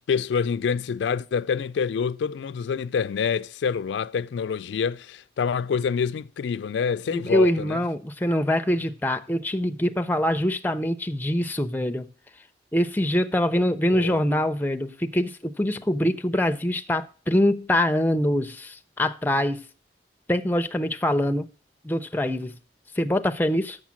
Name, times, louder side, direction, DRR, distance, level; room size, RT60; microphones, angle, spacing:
voice 1, 0.1-7.8 13.9-14.2, left 6 dB, 85° left, 0.3 m, -26 dB
voice 2, 7.1-12.1 12.7-19.6 20.3-21.5 21.8-22.6 23.0-23.8, left 1 dB, 10° left, 0.4 m, -24 dB
7.2 x 6.4 x 7.4 m
head